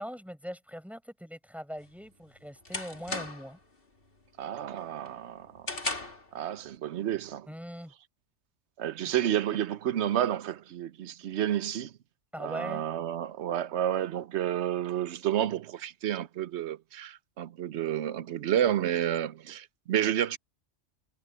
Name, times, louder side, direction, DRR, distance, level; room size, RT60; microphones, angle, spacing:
voice 1, 0.0-3.6 7.5-7.9 12.3-12.9, equal, ahead, 6.8 m, -41 dB
sound 1, 1.8-3.6 4.0-4.4 4.8-6.3, left 3 dB, 50° left, 2.9 m, -37 dB
voice 2, 4.4-5.7 6.0-7.5 8.8-11.9 12.4-20.4, right 11 dB, 70° right, 0.9 m, -30 dB
omnidirectional pair, 1.2 m